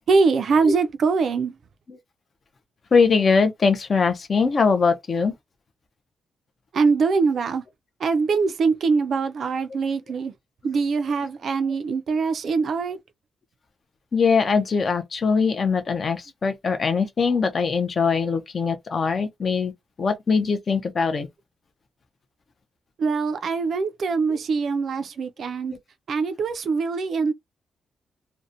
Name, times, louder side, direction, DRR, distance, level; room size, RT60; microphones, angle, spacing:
voice 1, 0.1-1.5 6.7-7.6 8.0-10.3 10.6-13.0 23.0-25.7 26.1-27.3, right 4 dB, 50° right, 0.3 m, -23 dB
voice 2, 2.9-5.3 14.1-19.7 20.0-21.3 24.3-24.4 25.7-25.8, left 5 dB, 35° left, 0.4 m, -22 dB
2.6 x 2.0 x 2.5 m
wide cardioid pair, 155°, 0 cm